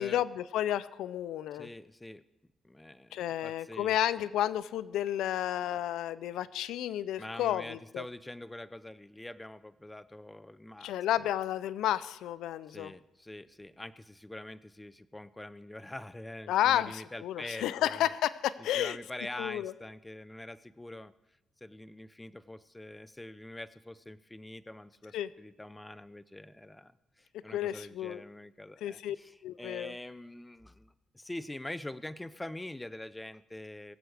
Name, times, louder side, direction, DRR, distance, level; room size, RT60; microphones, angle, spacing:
voice 1, 0.0-1.7 3.1-8.0 10.8-12.9 16.5-19.0 19.4-19.7 25.1-25.3 27.5-28.2 28.8-29.2 29.4-29.9, left 12 dB, 85° left, 17 dB, 0.4 m, -31 dB
voice 2, 1.5-2.2 2.6-4.0 7.2-10.9 12.7-18.1 18.6-21.1 21.6-34.0, left 1 dB, 10° left, 15 dB, 0.6 m, -45 dB
22.5 x 8.0 x 4.9 m, 0.93 s
cardioid pair, 90°, 0 cm